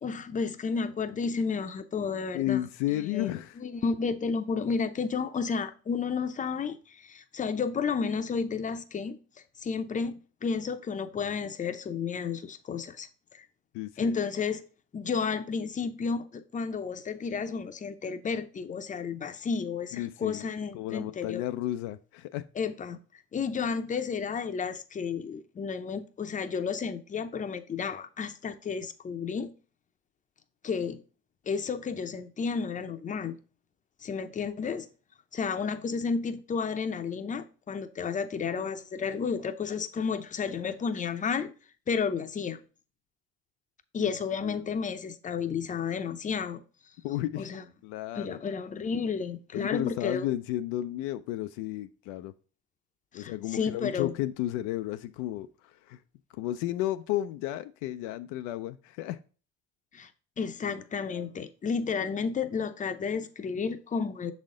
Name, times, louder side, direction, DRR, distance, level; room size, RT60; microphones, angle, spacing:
voice 1, 0.0-2.6 2.9-3.3 3.6-9.2 9.6-13.1 13.3-13.4 14.0-14.6 14.9-21.4 22.6-23.0 23.3-29.5 30.6-31.0 31.5-33.4 34.0-34.9 35.3-41.5 41.9-42.6 43.9-46.6 47.4-47.6 48.1-50.3 53.1-54.1 59.9-60.1 60.4-64.3, left 5 dB, 25° left, 0.7 m, -32 dB
voice 2, 2.3-3.6 13.7-14.1 19.9-20.5 20.7-22.4 44.0-44.1 44.4-44.7 47.0-47.5 47.8-48.4 49.5-52.3 53.1-56.0 56.3-59.2, left 14 dB, 75° left, 0.5 m, -33 dB
6.3 x 4.2 x 3.7 m
supercardioid pair, 85°, 30 cm